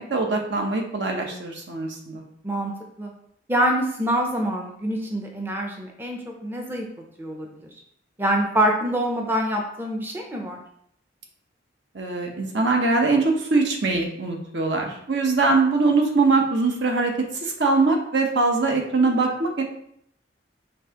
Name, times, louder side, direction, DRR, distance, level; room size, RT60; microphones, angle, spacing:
voice 1, 0.0-2.2 11.9-19.6, right 3 dB, 70° right, 2 dB, 0.8 m, -22 dB
voice 2, 3.5-6.9 7.2-7.7 8.2-10.6, right 1 dB, 10° right, 1 dB, 0.5 m, -25 dB
5.3 x 3.4 x 2.9 m, 0.70 s
head